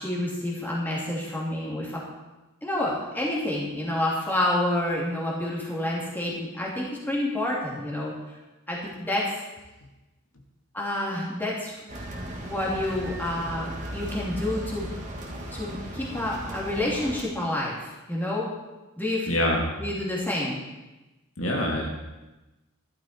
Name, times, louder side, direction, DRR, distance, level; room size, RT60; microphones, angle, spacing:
voice 1, 0.0-2.0 2.6-8.4 8.7-9.4 10.7-11.8 12.1-14.9 15.5-18.5 19.0-19.3 19.8-20.6, left 1 dB, 10° left, -4 dB, 2.7 m, -29 dB
sound 1, 11.9-17.2, right 1 dB, 35° right, 1.9 m, -36 dB
voice 2, 19.3-19.7 21.4-21.9, left 1 dB, 65° left, 0 dB, 2.1 m, -25 dB
13.5 x 11.5 x 4.4 m, 1.1 s
head